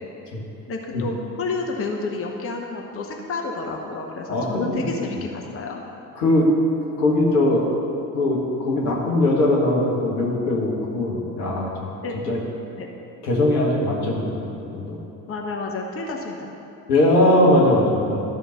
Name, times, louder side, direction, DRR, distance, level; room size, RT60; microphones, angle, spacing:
voice 1, 0.7-5.8 12.0-12.1 12.8-12.9 15.3-16.5, left 3 dB, 30° left, 1 dB, 1.1 m, -30 dB
voice 2, 4.3-4.9 6.2-6.5 7.0-7.6 8.1-11.9 12.3-12.4 13.2-15.0 16.9-18.2, left 1 dB, 75° left, -3 dB, 1.7 m, -20 dB
12.5 x 4.4 x 6.5 m, 2.9 s
figure-of-eight pair, 60°, 48 cm